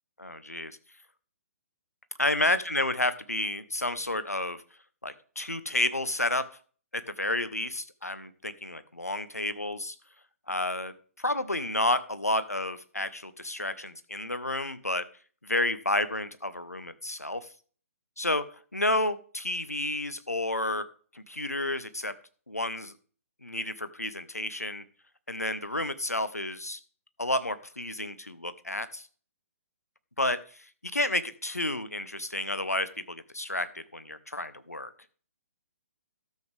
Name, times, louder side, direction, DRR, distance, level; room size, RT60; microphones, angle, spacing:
voice 1, 0.2-0.7 2.2-4.6 5.0-6.5 6.9-10.0 10.5-15.0 15.4-17.5 18.2-18.5 18.7-20.8 21.1-22.1 22.5-22.9 23.4-24.8 25.3-26.8 27.2-29.1 30.2-34.9, left 1 dB, 85° left, 13 dB, 1.0 m, -31 dB
13.0 x 7.5 x 3.3 m, 0.41 s
figure-of-eight pair, 130°, 8 cm